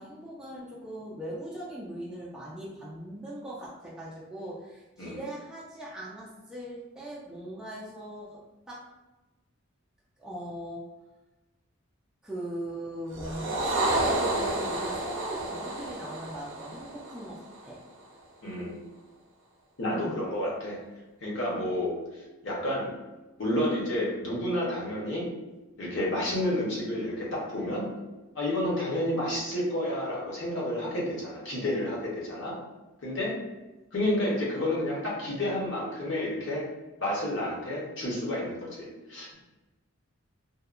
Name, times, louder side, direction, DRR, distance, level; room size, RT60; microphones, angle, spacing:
voice 1, 0.0-8.4 8.7-8.8 10.2-10.8 12.2-17.8 19.9-20.1, right 1 dB, 5° right, -8 dB, 0.3 m, -40 dB
sound 1, 13.1-17.7, right 2 dB, 65° right, 0.5 m, -30 dB
voice 2, 18.4-18.7 19.8-20.8 21.2-21.9 22.4-22.9 23.4-25.3 25.8-27.9 28.3-32.5 33.0-33.3 33.9-36.6 37.0-39.3, left 1 dB, 60° left, -4 dB, 0.8 m, -30 dB
2.7 x 2.2 x 2.4 m, 1.1 s
head